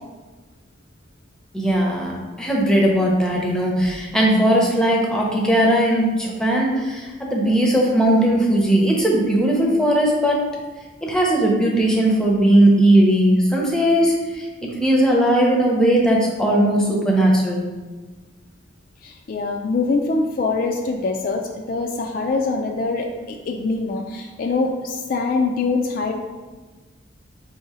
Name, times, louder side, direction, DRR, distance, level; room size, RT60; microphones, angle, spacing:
voice 1, 1.5-10.4 11.0-17.6, right 1 dB, 5° left, -3 dB, 0.6 m, -18 dB
voice 2, 19.0-21.4 21.7-26.1, left 3 dB, 45° left, 2 dB, 0.3 m, -24 dB
3.7 x 2.8 x 4.8 m, 1.3 s
head